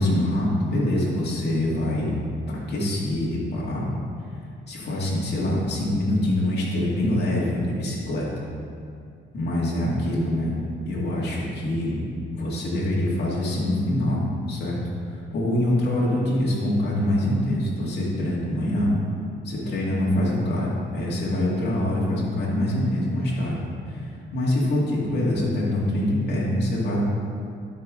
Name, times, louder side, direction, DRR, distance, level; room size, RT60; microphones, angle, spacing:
voice 1, 0.0-2.1 2.5-3.8 4.7-8.3 9.3-10.6 10.9-12.0 12.3-14.2 14.5-14.8 15.1-18.9 19.4-20.7 20.9-23.6 23.9-27.0, left 1 dB, 55° left, -6 dB, 2.2 m, -24 dB
12.0 x 5.7 x 3.8 m, 2.5 s
cardioid pair, 90°, 20 cm